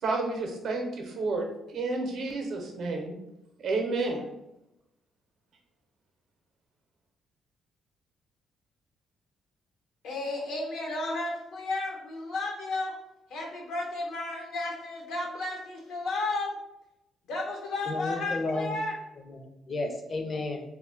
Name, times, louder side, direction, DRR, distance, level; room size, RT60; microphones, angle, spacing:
voice 1, 0.0-3.2 3.6-4.3, right 3 dB, 70° right, 2 dB, 0.6 m, -30 dB
voice 2, 10.0-12.9 13.3-16.6 17.2-18.9, left 2 dB, 85° left, -1 dB, 0.8 m, -33 dB
voice 3, 17.9-18.8 19.2-20.6, left 2 dB, 40° left, 4 dB, 0.5 m, -33 dB
2.1 x 2.1 x 3.7 m, 0.89 s
cardioid pair, 90°, 0 cm